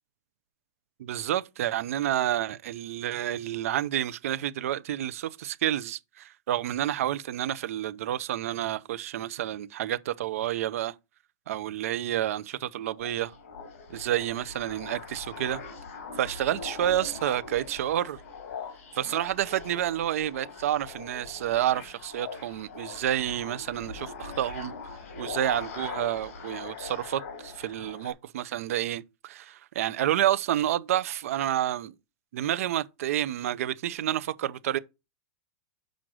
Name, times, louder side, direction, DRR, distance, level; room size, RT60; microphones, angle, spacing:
voice 1, 1.0-10.9 11.5-13.3 13.9-15.6 16.2-18.2 19.0-24.7 25.2-31.9 32.3-34.8, right 12 dB, 65° right, 0.6 m, -29 dB
sound 1, 12.8-28.1, left 5 dB, 60° left, 2.4 m, -42 dB
6.3 x 5.2 x 6.1 m
supercardioid pair, 170°, 8 cm